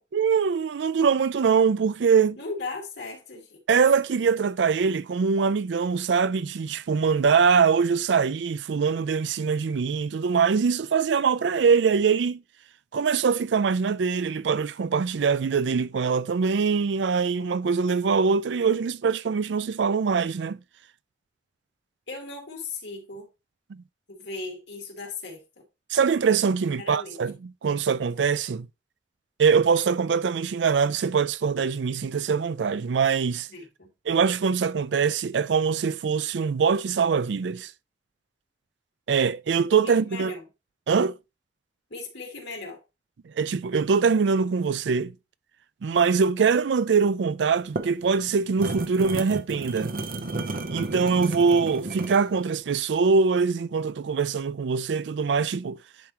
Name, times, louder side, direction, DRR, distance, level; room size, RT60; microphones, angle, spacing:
voice 1, 0.1-2.4 3.7-12.4 12.9-20.6 23.7-23.8 25.9-28.7 29.4-33.5 34.1-37.7 39.1-40.3 40.9-41.2 43.3-45.1 45.8-49.9 50.7-55.8, right 5 dB, 75° right, 0.4 m, -23 dB
voice 2, 2.4-3.6 22.1-23.3 24.1-25.6 26.8-27.2 33.5-33.9 39.8-40.4 41.9-42.8, left 3 dB, 70° left, 2.8 m, -37 dB
sound 1, 47.5-52.3, right 2 dB, 55° right, 0.8 m, -33 dB
10.5 x 4.9 x 2.9 m
head